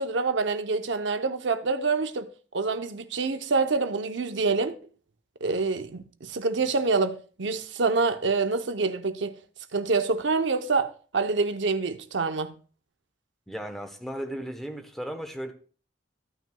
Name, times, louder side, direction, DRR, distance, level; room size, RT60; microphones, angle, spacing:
voice 1, 0.0-2.3 2.5-4.7 5.4-9.4 9.7-12.5, right 4 dB, 70° right, 0.7 m, -26 dB
voice 2, 13.5-15.5, equal, ahead, 1.0 m, -35 dB
14.0 x 9.1 x 2.3 m
head